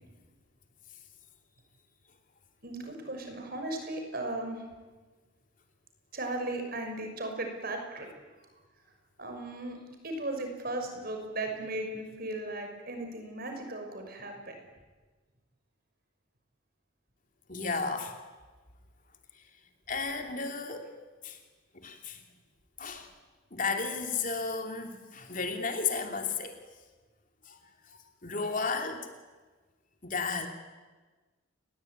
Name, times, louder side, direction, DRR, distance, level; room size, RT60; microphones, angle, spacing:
voice 1, 2.6-4.6 6.1-8.1 9.2-9.8 10.0-14.6, right 2 dB, 50° right, 4 dB, 6.1 m, -36 dB
voice 2, 17.5-18.2 19.9-20.9 21.2-21.4 21.8-22.2 22.8-23.1 23.5-26.6 27.5-27.6 27.9-29.1 30.0-30.5, left 4 dB, 40° left, 5 dB, 3.0 m, -33 dB
29.5 x 21.0 x 9.4 m, 1.3 s
head